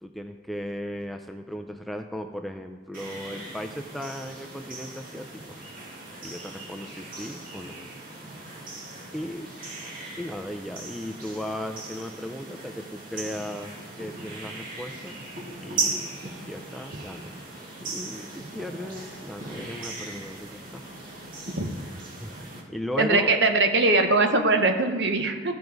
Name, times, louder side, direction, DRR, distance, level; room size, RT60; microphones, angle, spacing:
voice 1, 0.0-5.6 6.2-7.8 9.1-9.5 10.2-15.2 15.6-17.4 17.8-20.8 21.4-21.5 22.2-22.3 22.7-23.3, equal, ahead, 5 dB, 0.4 m, -36 dB
sound 1, 2.9-22.6, right 2 dB, 50° right, 1.9 m, -38 dB
voice 2, 23.0-25.5, right 2 dB, 65° right, 6 dB, 0.9 m, -21 dB
14.0 x 5.2 x 4.7 m, 1.5 s
head